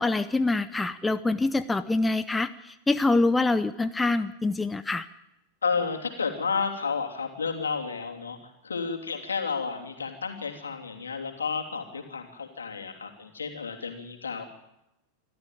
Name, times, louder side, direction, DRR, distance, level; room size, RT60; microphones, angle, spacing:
voice 1, 0.0-5.1, left 2 dB, 10° left, 12 dB, 0.8 m, -25 dB
voice 2, 5.6-8.4 8.6-14.6, left 5 dB, 70° left, 3 dB, 3.1 m, -31 dB
26.5 x 13.0 x 9.2 m, 0.89 s
figure-of-eight pair, 90°, 0 cm